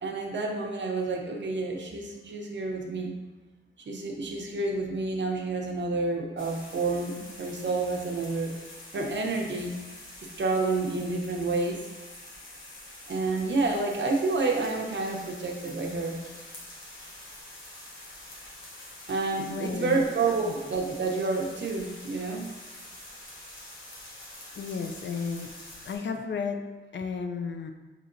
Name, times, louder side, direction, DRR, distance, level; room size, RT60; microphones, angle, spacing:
voice 1, 0.0-3.1 3.9-8.5 8.9-9.8 10.4-11.8 13.1-16.2 19.1-22.5, right 3 dB, 65° right, 1 dB, 0.6 m, -29 dB
sound 1, 6.4-26.0, left 1 dB, 85° left, 1.0 m, -46 dB
voice 2, 19.5-20.0 20.4-20.5 24.6-25.5 25.8-27.7, left 5 dB, 65° left, 5 dB, 0.4 m, -33 dB
5.5 x 2.9 x 2.5 m, 1.2 s
wide cardioid pair, 90°, 20 cm